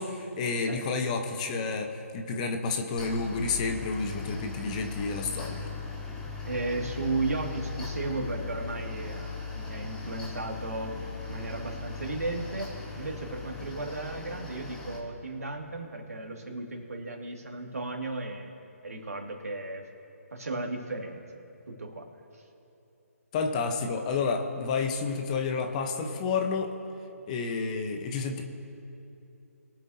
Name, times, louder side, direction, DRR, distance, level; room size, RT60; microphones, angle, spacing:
voice 1, 0.0-5.7 23.3-26.7 27.3-28.4, left 4 dB, 25° left, 4 dB, 1.0 m, -30 dB
Mechanical fan, 3.0-15.0, left 5 dB, 10° left, 1.5 m, -39 dB
voice 2, 6.5-12.7 13.0-18.5 18.8-19.9 20.3-21.2 21.7-22.1 22.3-22.4, right 2 dB, 75° right, 2 dB, 2.2 m, -35 dB
23.0 x 8.2 x 2.8 m, 2.9 s
figure-of-eight pair, 150°, 8 cm